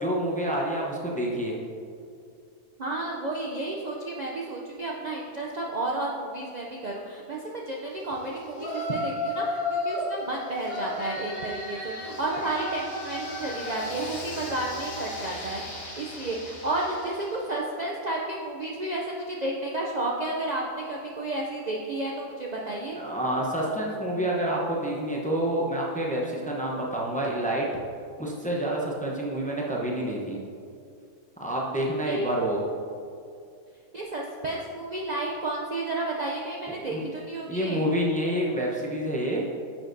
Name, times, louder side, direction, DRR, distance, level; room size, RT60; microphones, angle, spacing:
voice 1, 0.0-1.5 22.9-27.7 28.2-30.4 31.4-32.6 36.7-37.0 37.5-39.4, right 1 dB, 10° left, -3 dB, 0.5 m, -28 dB
voice 2, 2.8-23.0 32.1-32.3 33.9-37.8, right 2 dB, 75° right, -2 dB, 0.4 m, -32 dB
Yell, 8.5-10.1 10.6-17.4, left 1 dB, 80° left, 2.1 m, -34 dB
9.6 x 6.1 x 2.7 m, 2.4 s
omnidirectional pair, 1.5 m